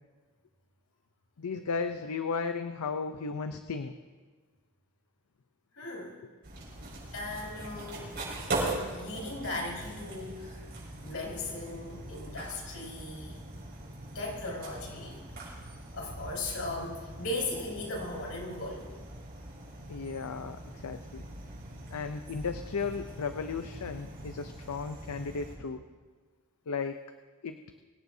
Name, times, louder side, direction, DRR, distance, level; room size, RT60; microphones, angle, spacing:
voice 1, 1.4-3.9 19.9-21.2 21.9-25.8 26.7-27.0 27.4-27.6, left 5 dB, 90° left, 8 dB, 0.6 m, -35 dB
voice 2, 5.7-6.2 7.1-8.1 8.9-10.6 11.0-13.4 14.1-15.2 15.9-18.9, left 2 dB, 70° left, -2 dB, 5.0 m, -37 dB
sound 1, 6.4-25.6, right 2 dB, 45° right, 5.9 m, -41 dB
23.5 x 17.5 x 2.7 m, 1.4 s
head